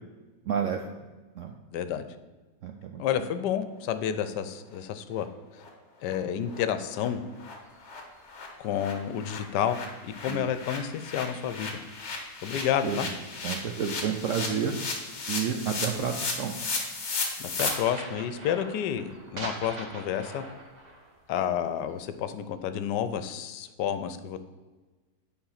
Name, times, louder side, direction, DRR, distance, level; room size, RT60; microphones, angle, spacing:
voice 1, 0.5-0.8 1.4-1.5 2.6-3.0 10.3-10.4 12.8-13.0 13.4-14.8 15.3-16.5, right 7 dB, 70° right, 4 dB, 0.7 m, -30 dB
voice 2, 1.7-2.1 3.0-5.3 6.0-7.2 8.6-9.8 10.0-11.8 12.4-13.1 17.4-20.4 21.3-24.4, left 9 dB, 80° left, 11 dB, 1.2 m, -30 dB
sound 1, 4.7-4.8 5.1-5.2 5.6-5.7 6.0-6.2 6.5-6.6 6.9-7.1 7.4-7.5 7.8-17.7, left 3 dB, 45° left, 1.3 m, -35 dB
sound 2, 7.5-11.3 11.7-15.1 15.4-15.7 16.1-22.5, right 2 dB, 30° right, 1.0 m, -43 dB
8.7 x 3.9 x 5.6 m, 1.3 s
omnidirectional pair, 1.8 m